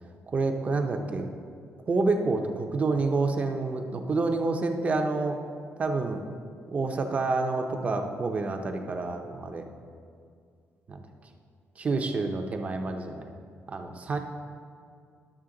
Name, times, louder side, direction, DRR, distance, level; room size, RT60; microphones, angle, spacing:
voice 1, 0.3-1.3 1.9-5.4 5.8-6.2 6.7-9.6 10.9-11.1 11.8-13.3 13.7-14.2, right 3 dB, 30° right, 4 dB, 0.6 m, -28 dB
11.0 x 6.7 x 3.8 m, 2.3 s
cardioid pair, 170°, 5 cm